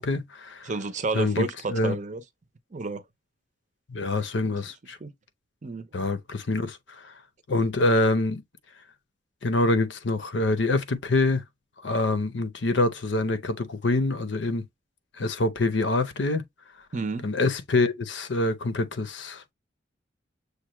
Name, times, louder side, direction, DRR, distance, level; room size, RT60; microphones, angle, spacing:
voice 1, 0.0-0.7 1.1-2.0 3.9-5.0 5.9-7.1 7.5-8.4 9.4-11.4 11.8-14.7 15.2-16.4 17.2-19.5, left 2 dB, 70° left, 0.7 m, -25 dB
voice 2, 0.6-2.2 2.7-3.0 4.5-4.6 5.0-5.1 5.6-5.9 16.9-17.3, right 3 dB, 40° right, 0.6 m, -30 dB
6.6 x 2.2 x 3.0 m
head